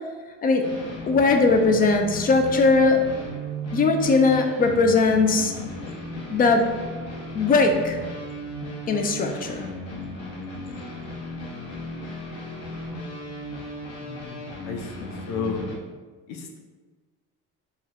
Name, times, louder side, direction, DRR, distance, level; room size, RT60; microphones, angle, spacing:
sound 1, 0.6-15.7, equal, 55° left, 0.9 m, -35 dB
voice 1, 1.1-3.0 3.7-5.5 6.3-6.6 7.3-8.0 8.9-9.7, left 3 dB, 30° left, 5 dB, 0.4 m, -19 dB
voice 2, 14.0-15.6 16.3-16.6, left 5 dB, 80° left, 3 dB, 0.7 m, -33 dB
4.5 x 2.2 x 3.6 m, 1.4 s
cardioid pair, 145°, 32 cm